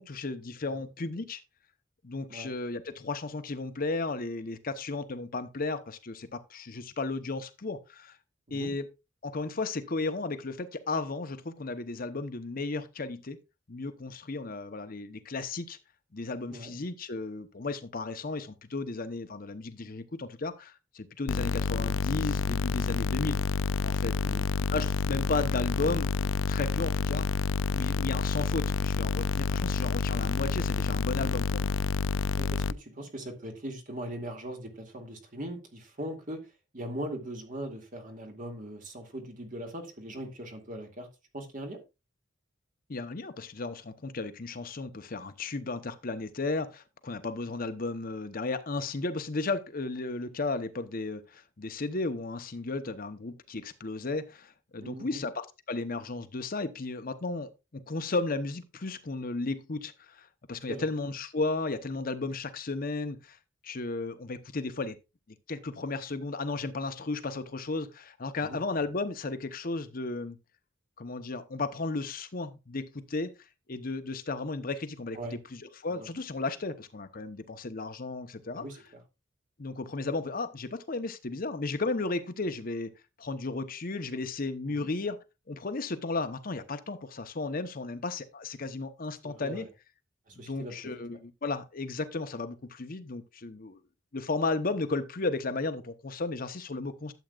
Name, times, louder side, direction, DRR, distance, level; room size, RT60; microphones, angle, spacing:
voice 1, 0.0-1.4 2.0-8.2 8.5-8.8 9.2-13.4 13.7-15.8 16.1-23.4 23.8-24.5 24.7-27.3 27.7-31.8 42.9-63.4 63.6-65.0 65.5-70.4 71.0-73.3 73.7-75.2 75.5-78.6 79.6-82.9 83.2-85.2 85.5-89.7 90.4-93.8 94.1-97.1, left 3 dB, 50° left, 0.9 m, -34 dB
sound 1, 21.3-32.7, left 5 dB, 85° left, 0.4 m, -29 dB
voice 2, 32.4-41.1 41.3-41.8 54.8-55.3 60.7-60.9 68.4-68.6 75.1-75.4 75.9-76.1 78.5-79.0 84.7-84.9 89.2-89.7 90.3-91.0, right 1 dB, 45° right, 2.2 m, -40 dB
12.0 x 7.7 x 2.4 m
head